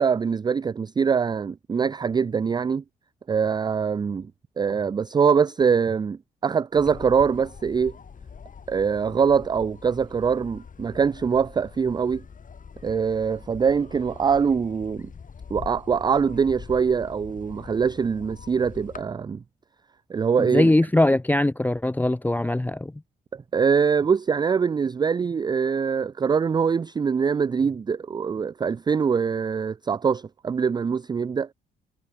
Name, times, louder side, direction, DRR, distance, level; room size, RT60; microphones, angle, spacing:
voice 1, 0.0-2.8 3.3-4.3 4.6-7.9 8.7-12.2 12.8-15.1 15.5-19.4 20.1-20.7 23.3-31.5, right 6 dB, 20° right, 0.3 m, -23 dB
sound 1, 6.7-19.0, left 6 dB, 40° left, 5.5 m, -43 dB
voice 2, 20.4-22.9, left 1 dB, 10° left, 0.8 m, -21 dB
cardioid pair, 90°, 20 cm